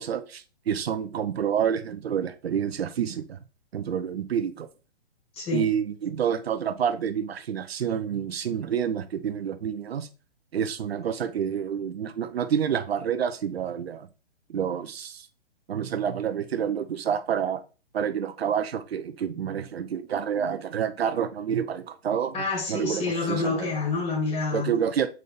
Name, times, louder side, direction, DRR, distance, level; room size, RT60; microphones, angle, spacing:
voice 1, 0.0-3.4 3.7-4.7 5.5-10.1 10.5-14.1 14.5-15.3 15.7-17.6 17.9-22.3 22.7-23.7 24.5-25.1, right 8 dB, 70° right, 0.9 m, -28 dB
voice 2, 5.3-5.7 22.3-24.7, left 4 dB, 20° left, 2.3 m, -28 dB
6.4 x 4.2 x 3.5 m
hypercardioid pair, 130°, 32 cm